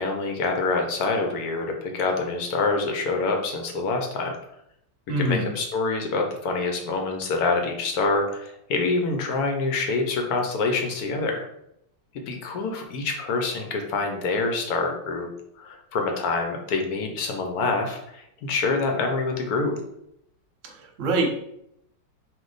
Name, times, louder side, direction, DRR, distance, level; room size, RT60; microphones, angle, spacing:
voice 1, 0.0-4.3 5.2-11.5 12.3-15.3 15.6-19.7, left 3 dB, 65° left, 3 dB, 1.1 m, -26 dB
voice 2, 5.1-5.5 20.7-21.3, right 2 dB, 50° right, 0 dB, 1.0 m, -24 dB
4.0 x 2.7 x 3.9 m, 0.77 s
omnidirectional pair, 2.0 m